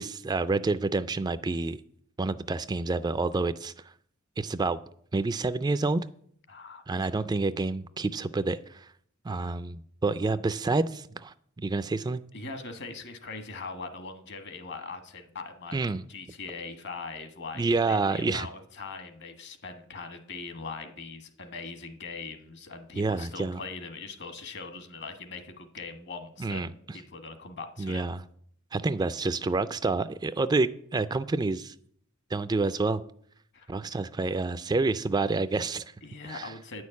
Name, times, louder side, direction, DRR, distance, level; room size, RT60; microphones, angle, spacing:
voice 1, 0.0-1.8 2.2-3.7 4.4-4.8 5.1-6.0 6.9-8.9 9.2-11.3 11.6-12.2 15.7-16.0 17.6-18.5 23.0-23.6 26.4-26.7 27.8-28.2 28.7-31.7 32.3-33.0 33.7-35.9 36.2-36.5, right 3 dB, 20° right, 0.3 m, -28 dB
voice 2, 6.5-6.8 12.3-28.1 33.5-33.7 36.0-36.8, left 4 dB, 60° left, 1.4 m, -41 dB
9.7 x 6.4 x 8.4 m
head